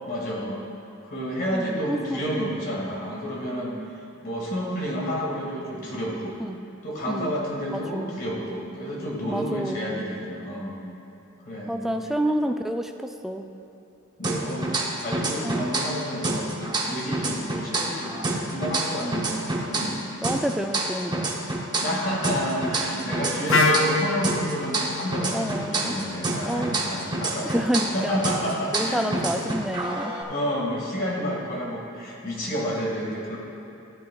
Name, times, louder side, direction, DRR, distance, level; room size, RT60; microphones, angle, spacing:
voice 1, 0.1-0.6 1.1-3.8 4.2-6.4 6.8-10.8 11.4-12.0 14.2-16.5 16.9-20.0 21.8-27.7 27.9-29.2 30.3-33.4, equal, 45° left, -3 dB, 2.0 m, -30 dB
voice 2, 1.5-2.6 6.4-6.6 7.1-7.4 7.7-8.1 9.3-10.0 11.7-13.5 15.4-15.7 19.0-19.2 20.2-21.3 25.3-25.9 26.5-26.8 27.4-30.2, equal, ahead, 5 dB, 0.3 m, -29 dB
sound 1, 14.2-16.0 16.2-20.0 20.2-24.0 24.2-28.0 28.2-30.2, right 2 dB, 20° right, 0.8 m, -28 dB
Wind instrument woodwind instrument, 23.5-27.4, left 2 dB, 65° left, 0.7 m, -27 dB
13.5 x 9.0 x 2.3 m, 2.7 s
head